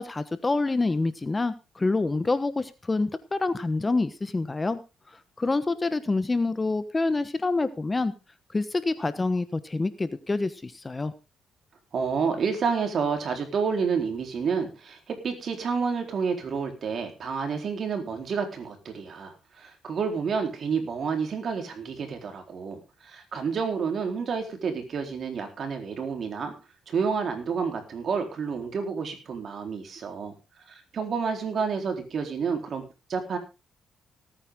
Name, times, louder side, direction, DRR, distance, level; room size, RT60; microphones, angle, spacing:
voice 1, 0.0-4.8 5.4-8.1 8.5-11.1, left 3 dB, 20° left, 13 dB, 1.1 m, -27 dB
voice 2, 11.9-26.5 26.9-30.3 30.7-32.8 33.1-33.4, right 5 dB, 55° right, 5 dB, 4.1 m, -29 dB
18.5 x 9.3 x 3.8 m, 0.28 s
cardioid pair, 90°, 0 cm